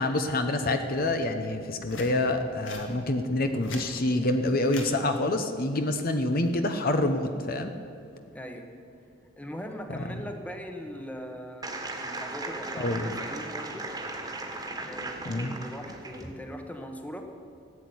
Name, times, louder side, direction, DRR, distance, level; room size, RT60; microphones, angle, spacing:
voice 1, 0.0-7.7 9.9-10.2 12.8-13.1 15.2-15.6, left 2 dB, 50° left, 7 dB, 0.9 m, -27 dB
sound 1, 1.8-2.1 2.6-2.9 3.4-3.9 4.7-4.9 6.2-6.5, left 3 dB, 70° left, 2.3 m, -40 dB
voice 2, 8.3-8.7 9.4-11.7 12.0-13.9 14.8-17.2, equal, 5° left, 4 dB, 1.2 m, -40 dB
sound 2, 11.6-16.3, right 2 dB, 20° right, 1.6 m, -37 dB
16.0 x 8.3 x 9.6 m, 2.6 s
head